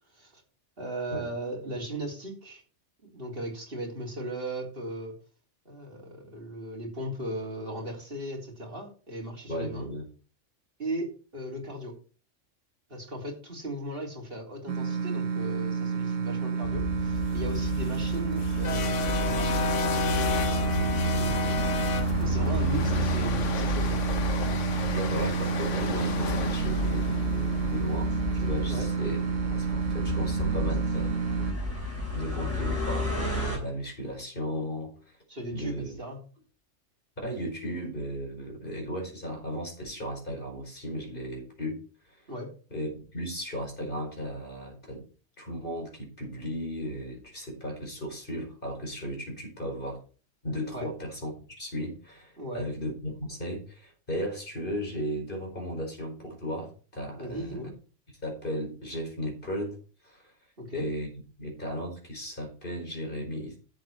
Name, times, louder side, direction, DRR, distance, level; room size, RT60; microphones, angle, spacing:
voice 1, 0.8-2.6 3.0-5.2 5.7-9.9 10.8-12.0 12.9-24.0 28.7-28.9 35.3-36.2 42.3-42.5 50.7-50.9 52.4-52.7 57.2-57.8 60.6-60.9, right 1 dB, 45° right, -1 dB, 3.8 m, -37 dB
voice 2, 9.5-10.1 24.9-29.2 29.5-31.5 32.1-35.2 35.5-36.0 37.2-42.2 42.7-45.0 45.4-50.0 50.4-57.6 58.2-60.3 60.7-61.1 61.4-63.6, equal, 40° left, 1 dB, 5.1 m, -35 dB
sound 1, 14.7-31.5, right 6 dB, 80° right, 1.3 m, -30 dB
sound 2, 16.6-33.6, equal, 10° left, 6.1 m, -32 dB
sound 3, 17.4-29.6, left 7 dB, 70° left, 1.2 m, -34 dB
11.5 x 7.8 x 4.5 m, 0.37 s
omnidirectional pair, 1.3 m